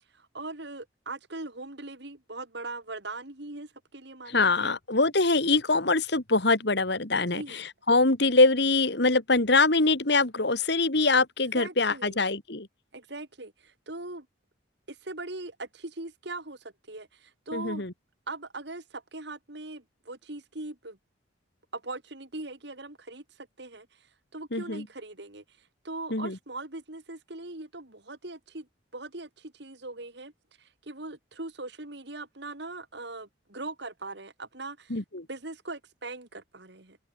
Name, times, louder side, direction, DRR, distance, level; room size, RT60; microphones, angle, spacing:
voice 1, 0.1-4.7 7.3-7.6 11.5-12.2 12.9-14.3 14.9-17.9 18.3-21.0 21.7-23.9 24.3-25.4 25.8-28.7 28.9-30.3 30.6-35.0 35.3-37.0, right 2 dB, 60° right, 2.6 m, -40 dB
voice 2, 4.3-12.7 17.5-17.9 24.5-24.8 26.1-26.4 34.9-35.3, left 3 dB, 60° left, 2.4 m, -24 dB
open air
head